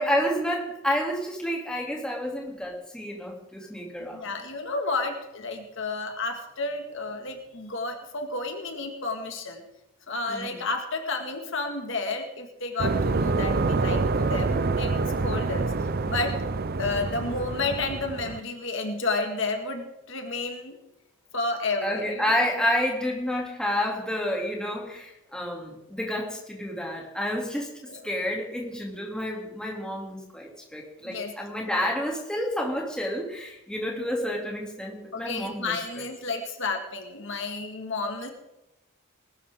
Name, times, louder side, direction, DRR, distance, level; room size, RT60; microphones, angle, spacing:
voice 1, 0.0-4.3 10.3-10.5 21.8-35.7, left 1 dB, 5° left, -1 dB, 2.7 m, -29 dB
voice 2, 4.1-9.6 10.1-15.7 16.1-16.4 16.8-20.8 21.3-22.3 27.9-28.1 31.0-31.3 33.9-34.1 35.1-38.3, left 3 dB, 60° left, 4 dB, 1.9 m, -31 dB
sound 1, 12.8-18.4, right 3 dB, 45° right, 0.6 m, -26 dB
20.0 x 12.5 x 3.7 m, 0.92 s
head